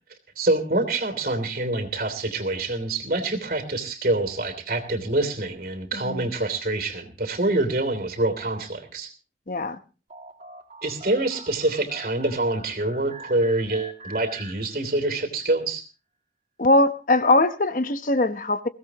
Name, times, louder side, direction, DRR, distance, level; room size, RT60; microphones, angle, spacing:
voice 1, 0.4-9.1 10.8-15.8, right 2 dB, 55° right, 3.1 m, -26 dB
voice 2, 5.9-6.3 9.5-9.8 16.6-18.7, left 2 dB, 50° left, 1.0 m, -21 dB
sound 1, 10.1-15.2, right 2 dB, 35° right, 2.2 m, -44 dB
21.5 x 16.5 x 3.0 m
head